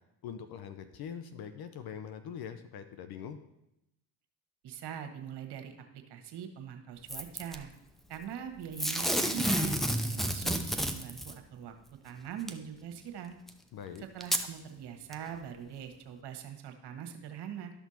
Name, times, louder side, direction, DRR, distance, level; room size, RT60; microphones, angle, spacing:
voice 1, 0.2-3.4 13.7-14.1, left 8 dB, 50° left, 9 dB, 0.8 m, -43 dB
voice 2, 4.6-7.7 8.1-11.7 12.0-13.4 14.0-17.7, right 8 dB, 60° right, 6 dB, 1.5 m, -42 dB
Packing tape duct tape / Tearing, 7.1-7.6 8.8-11.3 12.5-12.6 13.5-13.6 14.2-14.5 15.1-15.2, equal, ahead, 0.9 m, -30 dB
12.0 x 6.1 x 4.2 m, 0.87 s
hypercardioid pair, 55°, 46 cm